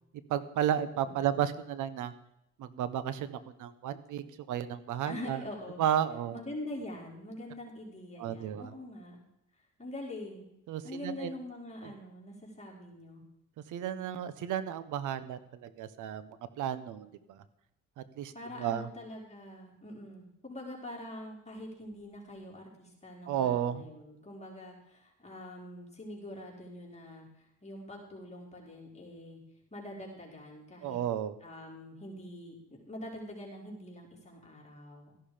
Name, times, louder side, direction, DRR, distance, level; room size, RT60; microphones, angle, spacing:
voice 1, 0.3-2.1 2.6-5.4 5.8-6.4 8.2-8.7 10.7-11.3 13.7-16.3 16.6-17.4 18.2-18.3 18.6-18.9 23.3-23.8 30.8-31.4, right 10 dB, 85° right, 14 dB, 1.1 m, -33 dB
voice 2, 5.1-5.8 6.3-9.2 9.6-10.5 10.8-13.2 18.3-29.4 29.7-31.0 31.4-35.1, left 1 dB, 20° left, -3 dB, 4.6 m, -44 dB
14.0 x 11.5 x 5.1 m, 0.82 s
cardioid pair, 90°, 30 cm